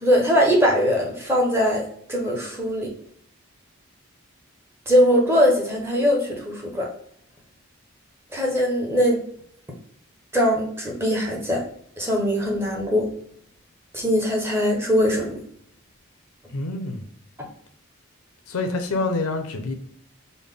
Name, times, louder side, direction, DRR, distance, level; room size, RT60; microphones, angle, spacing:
voice 1, 0.0-2.9 4.9-6.9 8.3-9.2 10.3-11.6 12.0-13.1 13.9-15.4, equal, 10° right, -1 dB, 0.7 m, -21 dB
voice 2, 16.5-17.1 18.5-19.7, left 3 dB, 85° left, 7 dB, 0.6 m, -26 dB
3.6 x 2.1 x 3.6 m, 0.66 s
head